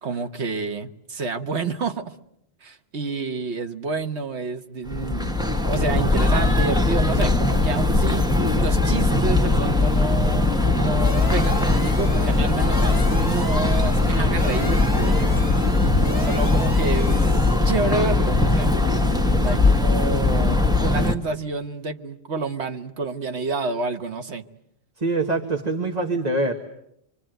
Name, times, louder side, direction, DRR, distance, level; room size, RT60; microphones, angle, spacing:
voice 1, 0.0-2.1 2.6-5.4 5.6-15.4 16.2-18.7 19.0-24.5, right 4 dB, 90° right, 1.6 m, -29 dB
sound 1, 4.9-21.1, left 2 dB, 5° right, 1.4 m, -20 dB
sound 2, 11.0-17.7, left 1 dB, 20° left, 1.9 m, -37 dB
voice 2, 25.0-26.5, right 2 dB, 40° right, 1.8 m, -24 dB
26.5 x 24.0 x 9.2 m
omnidirectional pair, 1.1 m